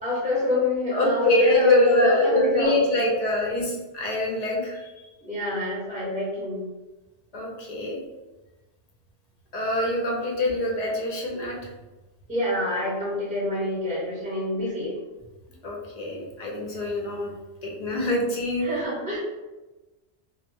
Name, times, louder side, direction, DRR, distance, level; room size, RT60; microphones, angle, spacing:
voice 1, 0.0-3.3 5.2-6.7 12.3-15.0 18.6-19.2, left 1 dB, 10° right, -7 dB, 0.5 m, -26 dB
voice 2, 0.9-4.9 7.3-8.0 9.5-11.6 15.6-17.3 17.6-18.7, left 1 dB, 55° left, -2 dB, 0.5 m, -25 dB
2.0 x 2.0 x 3.1 m, 1.1 s
omnidirectional pair, 1.1 m